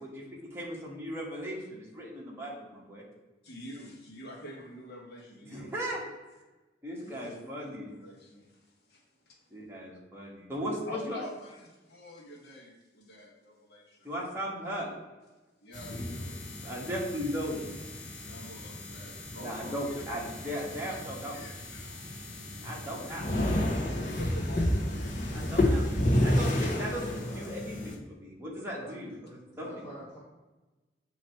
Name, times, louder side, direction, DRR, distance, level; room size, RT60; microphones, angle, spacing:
voice 1, 0.0-3.0 5.4-6.0 6.8-7.9 9.5-11.2 14.0-14.9 16.6-17.6 19.4-21.4 22.6-23.3 25.3-25.9 26.2-29.7, equal, 15° right, -4 dB, 1.5 m, -37 dB
voice 2, 3.4-5.7 7.0-8.5 8.9-9.0 9.3-9.4 10.9-14.1 15.6-16.4 18.2-21.0 21.3-22.0 22.9-23.1 23.8-25.6, equal, 65° left, -1 dB, 1.4 m, -47 dB
sound 1, 15.7-27.9, left 1 dB, 45° left, 1.2 m, -31 dB
voice 3, 27.2-27.5 28.8-28.9 29.6-30.2, right 1 dB, 15° left, -9 dB, 1.4 m, -45 dB
7.7 x 3.0 x 4.5 m, 1.1 s
head